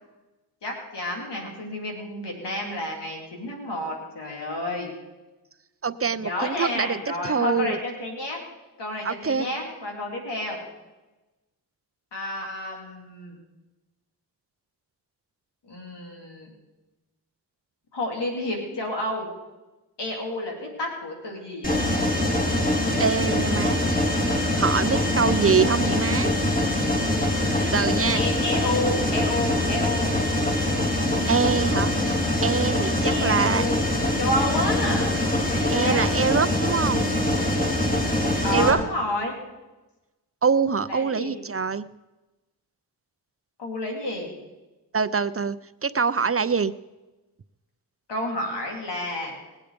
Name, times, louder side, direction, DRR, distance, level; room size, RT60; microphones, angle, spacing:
voice 1, 0.6-4.9 6.2-8.4 8.8-10.6 12.1-13.4 15.7-16.5 17.9-19.3 20.0-21.8 27.6-27.8 28.1-30.2 33.0-33.8 34.2-36.1 38.4-39.3 40.9-41.3 43.6-44.3 48.1-49.3, left 1 dB, 80° left, 0 dB, 3.7 m, -30 dB
voice 2, 5.8-7.8 9.0-9.5 23.0-23.8 24.5-26.3 27.7-28.2 31.3-33.6 35.7-37.1 38.5-38.8 40.4-41.9 44.9-45.6 45.8-46.7, right 5 dB, 35° right, 15 dB, 0.6 m, -24 dB
Mechanisms, 21.6-38.7, left 1 dB, 20° left, 4.1 m, -24 dB
20.0 x 8.4 x 5.2 m, 1.1 s
cardioid pair, 40°, 41 cm